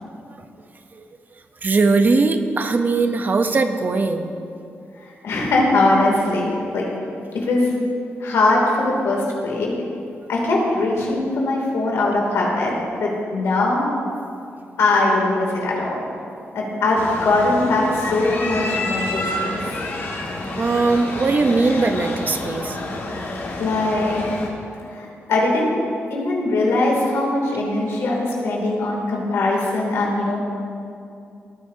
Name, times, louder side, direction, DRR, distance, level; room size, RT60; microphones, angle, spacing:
voice 1, 1.6-4.3 20.6-22.8, right 3 dB, 40° right, 7 dB, 0.8 m, -19 dB
voice 2, 5.0-6.9 7.5-7.7 8.2-9.7 10.3-12.7 13.0-13.9 14.8-16.0 16.5-19.8 23.6-24.2 24.9-25.8 26.1-30.4, left 2 dB, 90° left, -2 dB, 2.7 m, -21 dB
sound 1, 17.0-24.5, left 2 dB, 60° left, 1.8 m, -29 dB
18.0 x 9.9 x 2.8 m, 2.5 s
cardioid pair, 90°, 5 cm